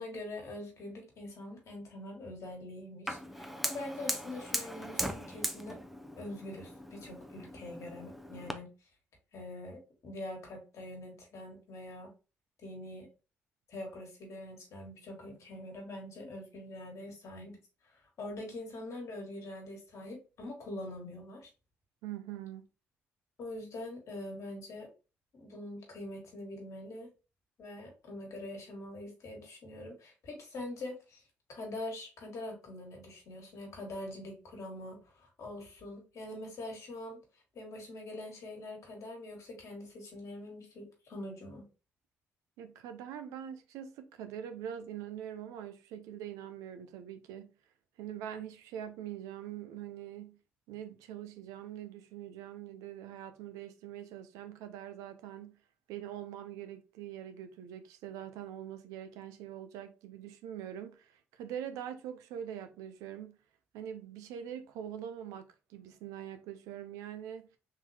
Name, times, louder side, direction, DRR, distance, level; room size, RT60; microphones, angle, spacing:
voice 1, 0.0-5.8 6.2-8.7 9.3-12.1 12.6-13.1 13.7-17.6 17.8-21.5 23.4-24.9 25.3-27.1 27.6-31.2 31.5-37.2 37.5-41.7, left 1 dB, 60° left, 1.6 m, -44 dB
Fire, 3.1-8.5, equal, 5° right, 0.5 m, -39 dB
voice 2, 22.0-22.7 42.6-47.5 48.0-50.4 50.7-55.6 55.9-63.4 63.7-67.5, right 10 dB, 80° right, 0.5 m, -43 dB
3.7 x 2.8 x 2.7 m
supercardioid pair, 55°, 6 cm